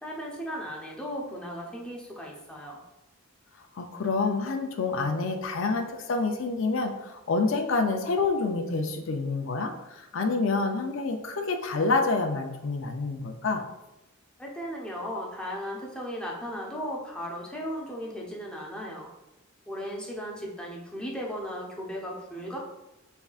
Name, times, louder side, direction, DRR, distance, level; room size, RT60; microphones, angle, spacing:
voice 1, 0.0-2.8 14.4-19.1 19.7-22.6, equal, 5° left, -3 dB, 0.8 m, -36 dB
voice 2, 3.8-13.6, left 3 dB, 65° left, 4 dB, 0.5 m, -28 dB
5.4 x 3.5 x 2.4 m, 0.94 s
head